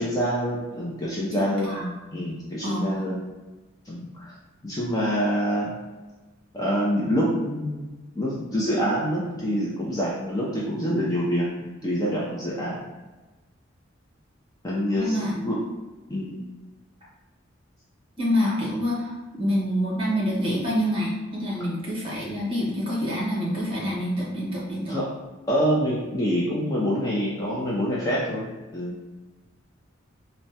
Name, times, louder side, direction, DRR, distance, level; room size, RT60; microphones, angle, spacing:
voice 1, 0.0-1.7 2.1-3.2 3.9-4.3 4.6-5.8 6.5-7.9 8.1-12.8 14.6-15.6 16.1-16.4 24.9-25.1 25.5-29.1, equal, 20° left, -6 dB, 0.4 m, -26 dB
voice 2, 1.3-1.9 2.6-3.1 14.9-15.3 18.2-19.1 19.4-24.9, equal, 25° right, -6 dB, 0.9 m, -27 dB
3.3 x 2.1 x 2.7 m, 1.2 s
head